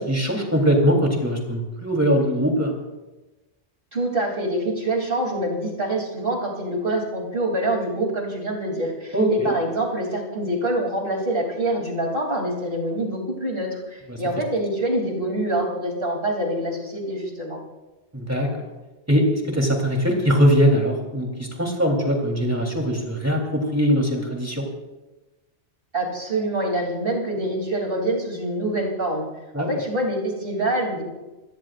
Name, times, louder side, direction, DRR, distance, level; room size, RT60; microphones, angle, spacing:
voice 1, 0.0-2.8 9.1-9.5 14.1-14.2 18.1-18.5 19.1-24.7 29.5-29.8, equal, 15° right, 0 dB, 3.4 m, -21 dB
voice 2, 3.9-17.6 25.9-29.3 29.6-31.0, right 1 dB, 55° right, 0 dB, 3.4 m, -25 dB
27.5 x 18.5 x 2.5 m, 1.1 s
omnidirectional pair, 1.1 m